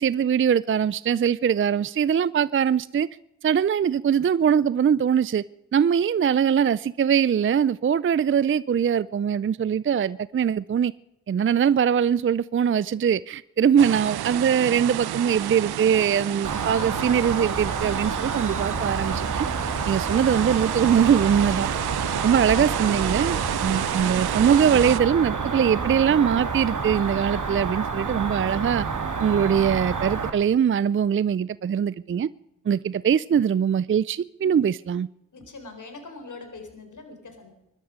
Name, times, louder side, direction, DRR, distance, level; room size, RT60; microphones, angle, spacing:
voice 1, 0.0-3.1 3.4-5.4 5.7-10.9 11.3-19.5 19.9-21.7 22.2-28.9 29.2-32.3 32.7-35.1, right 8 dB, 35° right, 0.5 m, -22 dB
sound 1, 13.8-25.0, right 12 dB, 80° right, 0.8 m, -31 dB
Cricket, 16.4-30.3, right 4 dB, 55° right, 2.7 m, -29 dB
voice 2, 16.7-17.3 22.0-22.7 35.3-37.5, left 3 dB, 50° left, 4.2 m, -42 dB
23.0 x 12.0 x 5.0 m
supercardioid pair, 45°, 37 cm